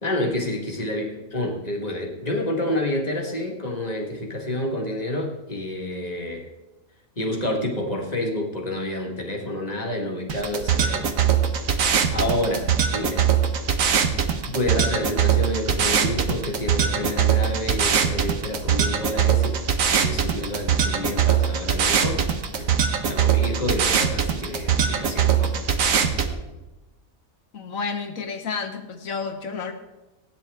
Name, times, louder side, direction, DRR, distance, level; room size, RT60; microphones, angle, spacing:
voice 1, 0.0-6.5 7.2-11.1 11.7-13.3 14.3-19.6 19.9-22.2 22.5-22.7 23.0-25.5, left 1 dB, 30° left, 0 dB, 1.7 m, -29 dB
sound 1, 10.3-26.3, right 7 dB, 70° right, 1.4 m, -22 dB
voice 2, 27.5-29.7, left 5 dB, 65° left, 6 dB, 1.5 m, -30 dB
17.0 x 9.5 x 3.5 m, 1.1 s
omnidirectional pair, 1.5 m